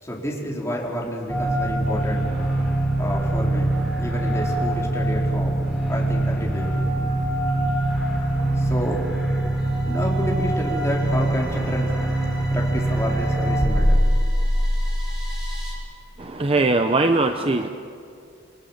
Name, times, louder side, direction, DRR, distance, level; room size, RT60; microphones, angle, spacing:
voice 1, 0.0-2.3 3.0-3.7 4.0-5.6 5.9-6.7 8.6-9.0 9.8-12.0 12.5-14.0, equal, 15° left, -2 dB, 4.2 m, -29 dB
sound 1, 1.3-15.7, right 1 dB, 5° right, 6.2 m, -23 dB
voice 2, 16.4-17.7, right 2 dB, 30° right, 6 dB, 0.8 m, -20 dB
29.0 x 23.0 x 7.4 m, 2.4 s
head